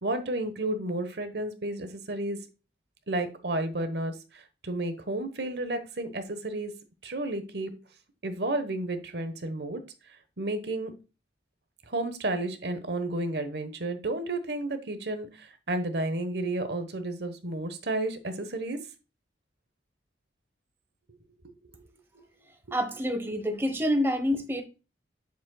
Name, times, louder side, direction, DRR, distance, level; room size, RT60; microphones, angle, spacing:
voice 1, 0.0-2.4 3.1-6.7 7.0-7.7 8.2-9.8 10.4-10.9 11.9-18.8, right 2 dB, 65° right, 1.1 m, -32 dB
voice 2, 22.7-24.6, equal, 15° right, 1.0 m, -27 dB
7.5 x 7.2 x 2.2 m
head